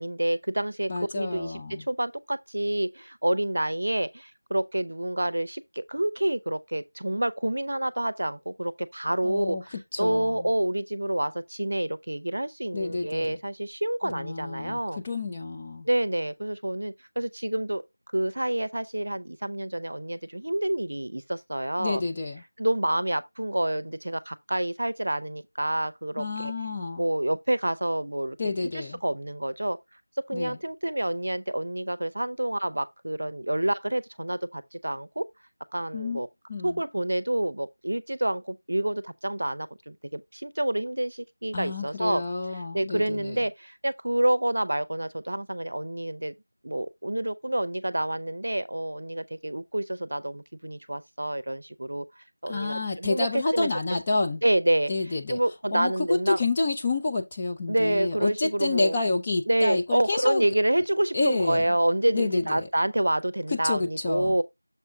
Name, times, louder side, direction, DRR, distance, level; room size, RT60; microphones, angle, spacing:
voice 1, 0.0-15.0 15.9-17.8 18.1-22.0 22.6-26.5 27.0-29.8 30.3-35.3 35.7-36.3 36.6-42.2 42.5-46.3 46.6-52.0 52.4-53.7 54.4-54.9 55.3-56.4 57.7-59.0 59.5-64.4, right 1 dB, 40° right, 0.6 m, -28 dB
voice 2, 0.9-1.8 9.2-9.6 9.9-10.5 12.7-13.4 14.0-14.8 15.0-15.9 21.8-22.4 26.2-27.0 28.4-29.0 30.3-30.6 35.9-36.2 36.5-36.8 41.5-43.4 52.5-54.4 54.9-55.4 55.7-60.5 61.1-61.7 62.1-62.7 63.5-64.4, left 3 dB, 10° left, 0.4 m, -29 dB
6.9 x 4.9 x 3.5 m
figure-of-eight pair, 180°, 0 cm